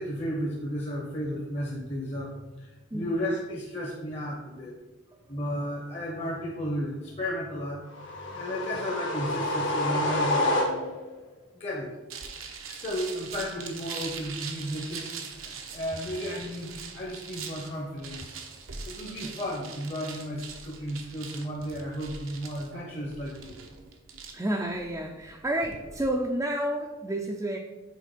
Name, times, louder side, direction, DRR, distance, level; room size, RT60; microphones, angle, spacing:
voice 1, 0.0-4.7 5.3-11.0 11.5-11.9 12.7-18.4 18.8-23.5, equal, 30° left, -3 dB, 0.9 m, -34 dB
sound 1, 7.9-11.1, left 1 dB, 65° left, 1.4 m, -28 dB
sound 2, 12.1-26.1, right 5 dB, 85° right, 0.9 m, -42 dB
voice 2, 24.3-27.6, right 1 dB, 15° right, 0 dB, 0.4 m, -30 dB
6.5 x 4.3 x 5.1 m, 1.1 s
head